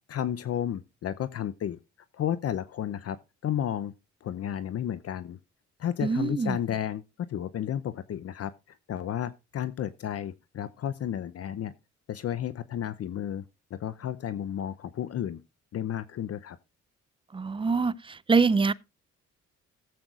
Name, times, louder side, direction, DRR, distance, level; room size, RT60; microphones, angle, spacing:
voice 1, 0.1-1.8 2.1-3.2 3.4-3.9 4.2-5.4 5.8-7.0 7.3-11.7 12.1-13.5 13.7-15.4 15.7-16.6, left 10 dB, 50° left, 0.6 m, -32 dB
voice 2, 6.0-6.6 17.3-18.7, right 4 dB, 20° right, 0.5 m, -24 dB
17.0 x 7.7 x 2.4 m
cardioid pair, 90°, 30 cm